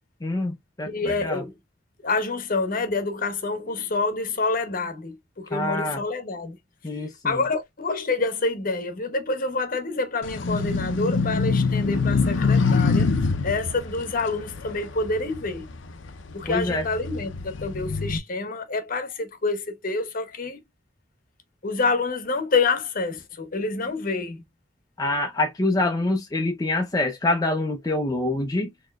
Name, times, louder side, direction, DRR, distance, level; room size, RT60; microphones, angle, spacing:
voice 1, 0.2-1.4 5.5-6.0 6.8-7.4 16.5-16.8 25.0-28.7, left 2 dB, 20° left, 0.5 m, -26 dB
voice 2, 0.8-1.5 2.0-6.6 7.2-13.1 13.4-15.7 16.3-20.6 21.6-24.4, left 3 dB, 50° left, 0.9 m, -27 dB
sound 1, 10.2-15.8 16.3-18.2, left 4 dB, 90° left, 0.6 m, -24 dB
4.3 x 2.9 x 2.2 m
head